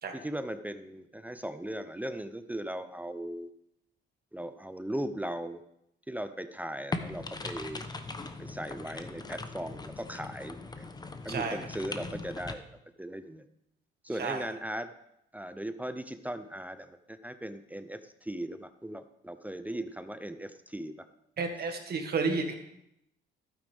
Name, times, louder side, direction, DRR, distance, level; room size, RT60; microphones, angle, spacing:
voice 1, 0.1-3.5 4.3-5.6 6.1-7.9 8.4-10.9 11.2-12.6 13.0-13.4 14.0-14.9 15.3-21.1, right 1 dB, 10° right, 11 dB, 0.5 m, -38 dB
sound 1, 6.9-12.5, left 3 dB, 20° left, 0.8 m, -40 dB
voice 2, 21.4-22.5, right 4 dB, 50° right, 5 dB, 1.6 m, -31 dB
11.5 x 9.1 x 3.5 m, 0.80 s
cardioid pair, 90°, 20 cm